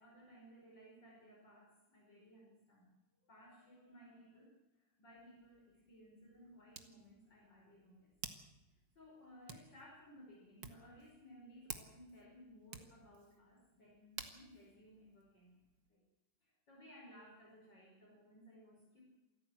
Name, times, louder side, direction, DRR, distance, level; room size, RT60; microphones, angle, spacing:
voice 1, 0.0-2.9 3.2-8.1 8.7-15.6 15.9-16.0 16.4-19.0, equal, 80° left, -3 dB, 6.0 m, -60 dB
Hands, 5.1-15.9, right 6 dB, 80° right, 2.4 m, -55 dB
27.0 x 14.0 x 7.8 m, 1.0 s
omnidirectional pair, 1.9 m